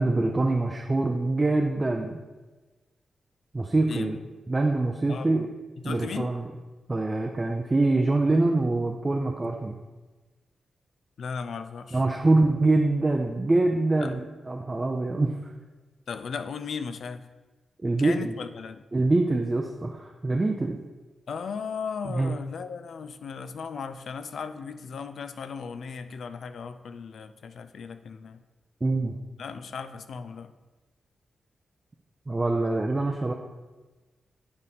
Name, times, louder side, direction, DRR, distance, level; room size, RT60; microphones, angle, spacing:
voice 1, 0.0-2.2 3.5-4.2 4.5-5.5 5.8-6.5 6.9-9.8 11.9-15.4 17.8-18.3 18.9-20.8 22.1-22.3 28.8-29.2 32.3-33.3, right 2 dB, 25° right, 1 dB, 0.5 m, -24 dB
voice 2, 3.9-4.2 5.1-5.5 5.8-6.3 11.2-12.0 14.0-14.2 16.1-17.3 18.0-18.8 21.3-28.4 29.4-30.5, left 6 dB, 70° left, 10 dB, 0.4 m, -36 dB
9.7 x 4.1 x 3.5 m, 1.3 s
cardioid pair, 100°, 0 cm